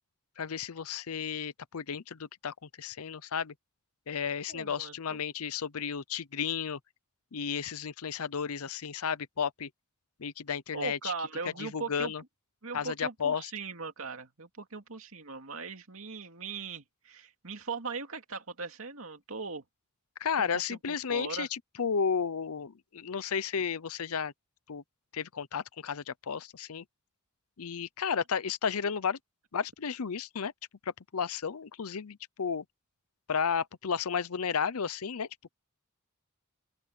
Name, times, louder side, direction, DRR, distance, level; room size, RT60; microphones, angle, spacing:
voice 1, 0.4-3.5 4.1-6.8 7.3-9.7 10.2-11.1 11.6-12.2 12.7-13.5 20.2-24.3 24.7-24.8 25.1-26.8 27.6-29.2 29.5-30.5 31.1-32.6 33.3-35.3, left 6 dB, 75° left, 0.7 m, -33 dB
voice 2, 4.5-4.9 10.7-12.1 12.6-19.6 20.4-21.5, right 4 dB, 65° right, 2.5 m, -39 dB
open air
head